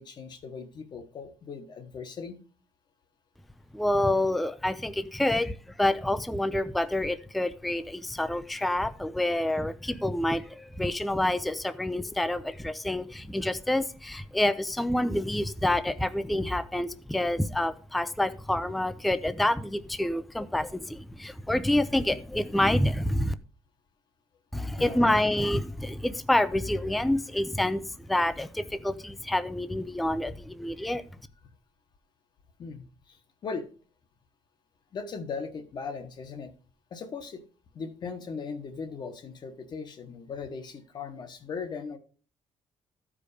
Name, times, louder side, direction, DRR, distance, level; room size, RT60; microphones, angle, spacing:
voice 1, 0.0-2.4 24.8-25.1 32.6-33.7 34.9-36.5 36.9-37.4 37.7-42.0, left 5 dB, 40° left, 8 dB, 1.1 m, -38 dB
voice 2, 3.7-23.3 24.5-31.0, left 1 dB, ahead, 11 dB, 0.4 m, -28 dB
13.5 x 5.0 x 4.9 m, 0.40 s
cardioid pair, 170°, 11 cm